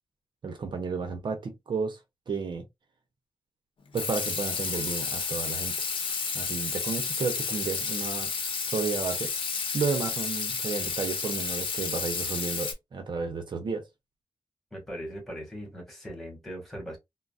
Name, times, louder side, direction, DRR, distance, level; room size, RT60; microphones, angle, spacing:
voice 1, 0.4-2.0 2.3-2.6 3.9-5.9 6.3-8.3 8.6-9.3 9.7-13.8, right 5 dB, 60° right, 0.7 m, -32 dB
Water tap faucet / Sink (filling or washing), 3.9-12.7, left 5 dB, 80° left, 0.8 m, -31 dB
voice 2, 14.7-17.0, equal, 5° left, 1.7 m, -39 dB
3.8 x 2.0 x 2.4 m
wide cardioid pair, 125°, 9 cm